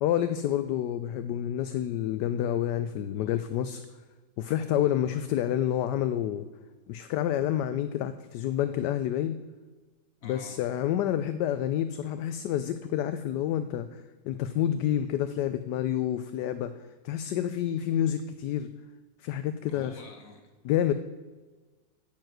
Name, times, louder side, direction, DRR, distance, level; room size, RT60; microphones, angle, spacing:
voice 1, 0.0-3.8 4.4-6.5 6.9-9.4 10.2-16.8 17.0-18.7 19.2-19.9 20.6-20.9, left 11 dB, 75° left, 10 dB, 1.1 m, -28 dB
voice 2, 10.2-10.6 19.7-20.4, left 3 dB, 50° left, 4 dB, 2.0 m, -47 dB
9.0 x 7.5 x 7.8 m, 1.3 s
omnidirectional pair, 1.9 m